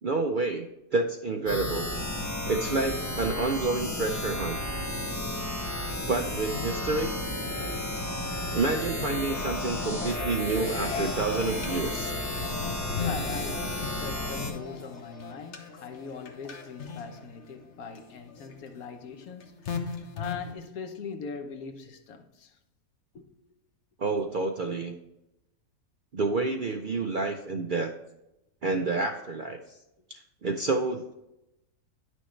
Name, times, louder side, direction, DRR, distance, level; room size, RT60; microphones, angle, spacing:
voice 1, 0.0-1.8 2.5-4.6 6.1-7.2 8.5-12.2 24.0-24.9 26.1-27.9 28.6-29.6 30.1-31.1, right 3 dB, 60° right, 0.5 m, -29 dB
sound 1, 1.5-14.5, left 1 dB, 20° left, 0.5 m, -33 dB
sound 2, 6.5-20.5, left 5 dB, 55° left, 1.1 m, -39 dB
voice 2, 13.0-22.6 23.1-23.4, left 5 dB, 85° left, 1.3 m, -41 dB
10.0 x 6.2 x 3.2 m
omnidirectional pair, 1.5 m